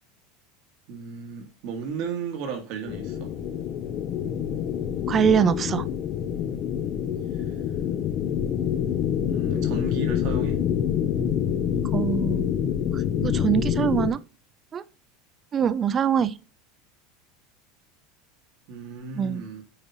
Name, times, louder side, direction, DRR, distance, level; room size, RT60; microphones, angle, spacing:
voice 1, 0.9-3.3 9.3-10.6 18.7-19.6, right 6 dB, 50° right, 1.7 m, -35 dB
sound 1, 2.9-14.1, left 9 dB, 35° left, 0.7 m, -26 dB
voice 2, 5.1-5.9 11.8-12.5 12.9-14.2 14.7-14.8 15.5-16.4 19.1-19.5, right 8 dB, 20° right, 0.3 m, -24 dB
8.7 x 3.0 x 4.0 m
supercardioid pair, 160°, 0 cm